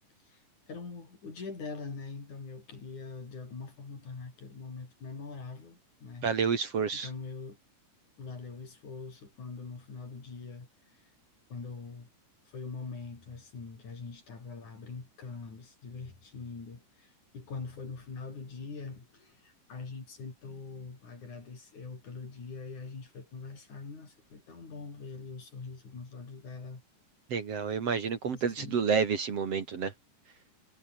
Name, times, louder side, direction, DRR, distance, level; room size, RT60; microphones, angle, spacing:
voice 1, 0.7-6.3 6.9-7.6 8.2-11.1 11.5-12.1 12.5-26.8 28.2-29.0, left 4 dB, 65° left, 7.1 m, -43 dB
voice 2, 6.2-7.1 27.3-29.9, right 6 dB, 50° right, 3.1 m, -29 dB
omnidirectional pair, 3.8 m